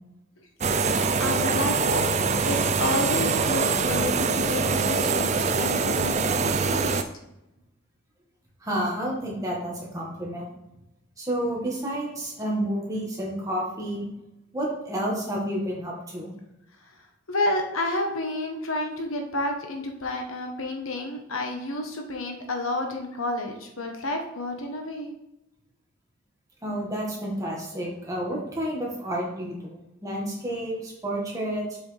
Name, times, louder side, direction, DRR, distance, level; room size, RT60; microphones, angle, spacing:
sound 1, 0.6-7.0, right 4 dB, 30° right, 0.4 m, -24 dB
voice 1, 0.7-2.0 2.5-6.3 6.6-6.9 17.3-25.1, left 1 dB, 70° left, 3 dB, 1.1 m, -30 dB
voice 2, 8.6-10.5 11.2-14.1 14.5-16.3 26.6-31.8, right 1 dB, 15° right, -3 dB, 1.8 m, -30 dB
7.1 x 6.1 x 3.4 m, 0.90 s
head